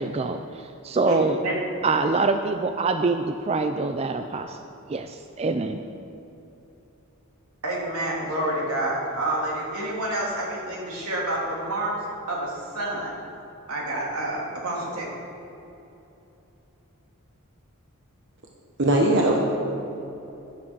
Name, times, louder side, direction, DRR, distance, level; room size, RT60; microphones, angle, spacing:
voice 1, 0.0-1.4 1.8-4.6 4.9-5.8, right 3 dB, 30° right, 7 dB, 0.3 m, -25 dB
voice 2, 1.0-1.5 7.6-11.9 12.3-13.1 13.7-15.1, right 1 dB, 80° right, -4 dB, 3.1 m, -28 dB
voice 3, 18.8-19.4, right 1 dB, 55° right, -1 dB, 1.1 m, -19 dB
12.0 x 11.0 x 4.6 m, 2.9 s
head